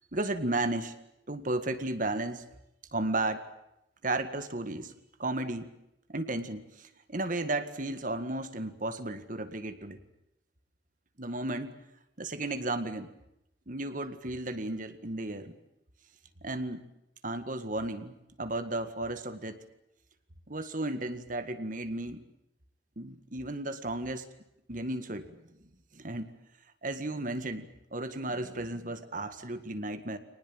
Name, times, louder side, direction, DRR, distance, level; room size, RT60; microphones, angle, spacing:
voice 1, 0.1-0.9 1.3-2.4 2.9-3.4 4.0-4.9 5.2-5.7 6.1-10.0 11.2-11.7 12.2-13.1 13.7-15.5 16.4-16.8 17.2-19.6 20.5-22.2 23.0-24.3 24.7-25.3 25.9-26.3 26.8-30.2, right 2 dB, 50° right, 9 dB, 1.9 m, -34 dB
25.5 x 19.5 x 9.0 m, 0.85 s
head